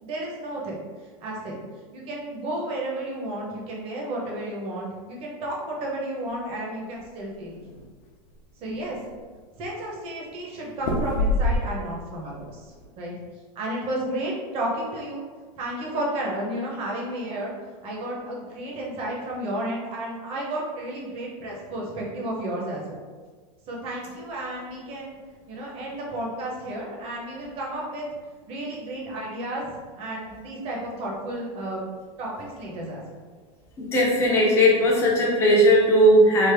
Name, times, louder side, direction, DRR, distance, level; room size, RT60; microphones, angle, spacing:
voice 1, 0.0-0.8 1.2-1.6 1.9-7.6 8.6-9.0 9.6-12.7 13.0-13.1 13.5-15.2 15.6-17.5 17.8-23.0 23.7-25.2 25.5-28.1 28.5-31.9 32.2-33.0, right 1 dB, 35° right, -3 dB, 0.8 m, -32 dB
sound 1, 6.9-7.8 8.3-8.4 8.7-9.3 10.8-12.0 12.4-12.8, left 2 dB, 50° left, 0.7 m, -26 dB
voice 2, 33.8-36.5, equal, 15° left, -4 dB, 0.6 m, -18 dB
3.4 x 2.0 x 3.4 m, 1.5 s
supercardioid pair, 150°, 17 cm